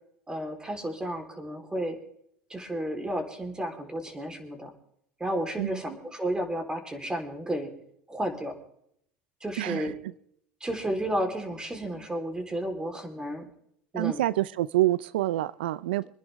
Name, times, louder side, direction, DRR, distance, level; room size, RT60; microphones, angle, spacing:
voice 1, 0.3-2.0 2.5-4.7 5.2-7.7 8.1-8.5 9.4-9.9 10.6-13.5 13.9-14.2, right 1 dB, 15° right, 5 dB, 3.8 m, -32 dB
voice 2, 9.6-9.9 13.9-16.1, right 15 dB, 85° right, 19 dB, 0.5 m, -27 dB
25.5 x 10.5 x 3.6 m, 0.70 s
hypercardioid pair, 90°, 5 cm